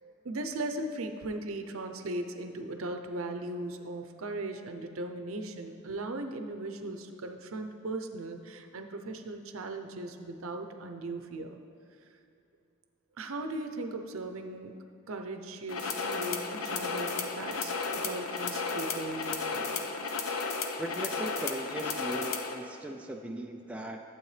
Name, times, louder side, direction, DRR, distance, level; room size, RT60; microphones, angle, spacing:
voice 1, 0.0-11.6 13.2-14.7 15.1-19.8, right 2 dB, 75° right, 6 dB, 0.7 m, -38 dB
sound 1, 15.7-22.5, left 4 dB, 80° left, 0.7 m, -33 dB
voice 2, 20.8-24.0, right 1 dB, 5° right, 2 dB, 0.4 m, -38 dB
12.0 x 7.8 x 3.3 m, 2.6 s
head